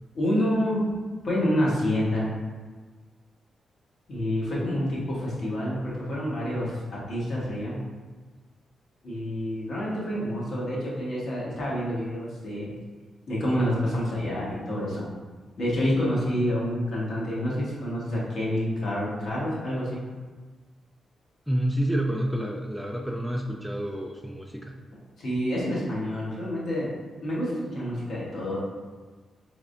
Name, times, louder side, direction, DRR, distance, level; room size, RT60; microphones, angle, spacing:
voice 1, 0.1-0.9 1.2-2.3 4.1-7.8 9.0-12.7 13.3-15.1 15.6-20.1 25.2-26.9 27.2-28.6, equal, 65° left, -6 dB, 1.2 m, -28 dB
voice 2, 21.5-24.8, right 1 dB, 5° right, 1 dB, 0.3 m, -29 dB
3.5 x 3.3 x 2.5 m, 1.4 s
cardioid pair, 80°, 0 cm